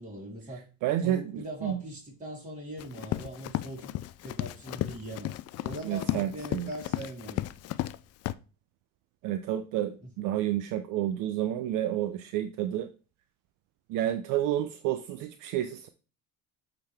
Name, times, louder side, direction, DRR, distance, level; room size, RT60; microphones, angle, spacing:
voice 1, 0.0-0.6 1.0-3.9 4.2-5.3 5.6-7.4 10.0-10.1, right 1 dB, 20° right, 3.8 m, -41 dB
voice 2, 0.8-1.8 5.8-6.7 9.2-12.9 13.9-15.9, right 12 dB, 60° right, 0.6 m, -30 dB
Run, 2.8-8.0 8.2-8.3, left 15 dB, 45° left, 0.4 m, -34 dB
8.4 x 4.0 x 3.4 m
supercardioid pair, 85°, 35 cm